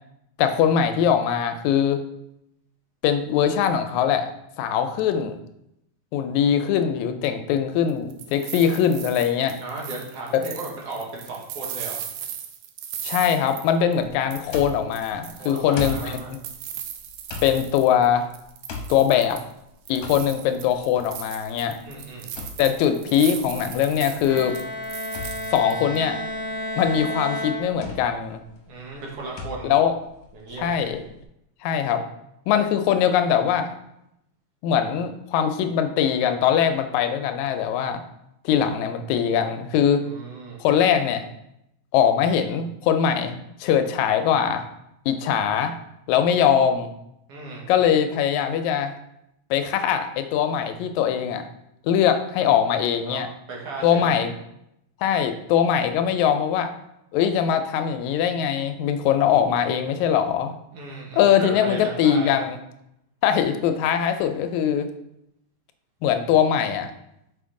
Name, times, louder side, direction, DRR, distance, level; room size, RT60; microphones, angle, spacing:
voice 1, 0.4-2.0 3.0-4.3 4.6-5.4 6.1-9.6 10.4-10.5 13.0-16.4 17.4-18.3 18.9-19.4 19.9-21.8 22.6-24.6 25.5-26.2 26.8-28.4 29.7-29.9 30.6-31.0 31.6-32.0 32.5-33.7 34.6-38.0 38.5-40.0 40.6-41.3 41.9-44.6 45.1-45.8 46.1-46.9 47.7-48.9 49.5-51.5 51.8-53.3 53.8-54.3 55.0-56.7 57.1-60.5 61.1-62.6 63.2-64.9 66.0-66.9, left 8 dB, 85° left, 8 dB, 1.9 m, -21 dB
sound 1, 7.9-14.0 14.3-18.1 18.3-19.5 19.9-26.0, right 9 dB, 75° right, 1.6 m, -37 dB
voice 2, 9.6-12.0 13.9-14.6 15.4-16.3 21.8-22.3 28.7-29.8 30.3-30.7 40.0-40.6 46.3-46.6 47.3-47.6 53.1-53.2 53.5-54.1 60.7-62.3, right 3 dB, 60° right, -2 dB, 2.0 m, -36 dB
sound 2, 14.5-31.2, left 3 dB, 70° left, 1.7 m, -40 dB
Bowed string instrument, 24.2-28.2, left 1 dB, 40° right, 3.0 m, -32 dB
5.6 x 5.1 x 3.7 m, 0.81 s
omnidirectional pair, 3.3 m